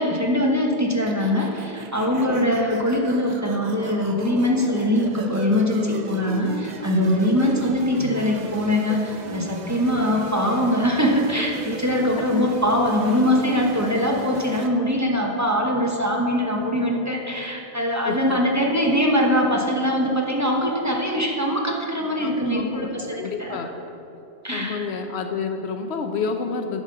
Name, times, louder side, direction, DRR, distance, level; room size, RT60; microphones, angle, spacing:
voice 1, 0.0-23.6 24.4-24.8, left 1 dB, 15° right, -1 dB, 1.0 m, -22 dB
sound 1, 1.1-14.7, right 4 dB, 50° right, 0.7 m, -36 dB
voice 2, 2.2-2.5 7.3-7.5 9.8-10.1 18.0-18.4 22.2-23.7 24.5-26.8, left 5 dB, 85° left, 6 dB, 1.0 m, -30 dB
10.5 x 5.3 x 6.7 m, 2.8 s
omnidirectional pair, 1.1 m